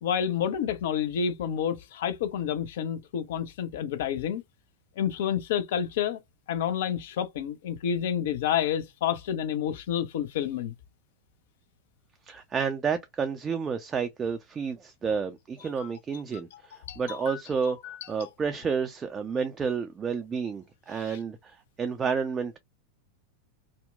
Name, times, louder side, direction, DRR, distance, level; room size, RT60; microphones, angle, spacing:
voice 1, 0.0-4.4 5.0-6.2 6.5-10.7 15.8-15.9 16.9-17.4 17.8-18.3 20.9-21.2, left 9 dB, 55° left, 0.4 m, -29 dB
voice 2, 12.3-17.8 18.1-22.6, right 6 dB, 20° right, 0.3 m, -30 dB
2.7 x 2.1 x 2.3 m
figure-of-eight pair, 90°, 0 cm